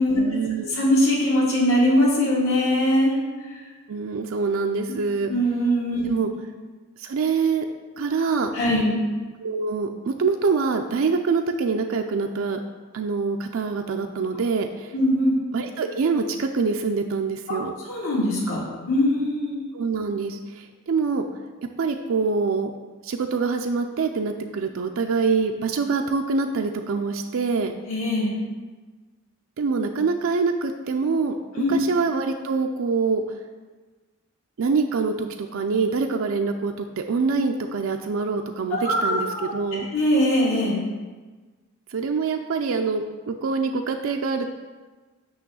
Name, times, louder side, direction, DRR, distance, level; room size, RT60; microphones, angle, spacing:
voice 1, 0.2-0.7 3.9-5.3 6.0-6.3 7.0-7.7 8.0-8.5 9.4-12.6 12.9-14.9 15.5-17.7 19.7-21.2 21.8-22.7 23.0-27.7 29.6-33.2 34.6-39.9 41.9-44.5, right 4 dB, 70° right, 4 dB, 0.4 m, -25 dB
voice 2, 0.7-3.2 3.4-3.6 5.3-6.0 6.3-6.4 8.5-8.9 14.9-15.4 17.5-17.6 17.9-19.6 27.9-28.3 31.5-31.7 38.7-39.5 39.9-40.8, left 1 dB, 70° left, -5 dB, 2.2 m, -21 dB
8.5 x 3.0 x 6.1 m, 1.3 s
head